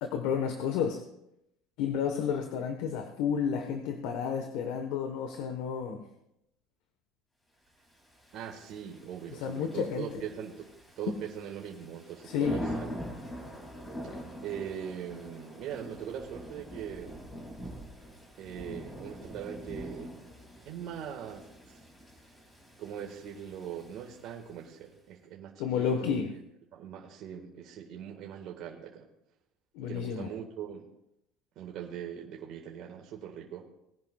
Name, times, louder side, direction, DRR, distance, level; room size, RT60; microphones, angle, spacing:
voice 1, 0.0-1.0 1.8-6.0 9.3-10.2 12.2-12.6 25.6-26.3 29.7-30.3, left 7 dB, 75° left, 5 dB, 1.2 m, -31 dB
Thunder / Rain, 8.1-24.7, equal, 15° left, 2.8 m, -44 dB
voice 2, 8.3-12.9 14.4-17.2 18.4-20.1 20.7-21.8 22.8-26.2 26.7-29.1 29.8-30.9 31.6-33.6, right 8 dB, 55° right, 0 dB, 1.7 m, -41 dB
20.0 x 10.5 x 2.4 m, 0.82 s
cardioid pair, 125°, 0 cm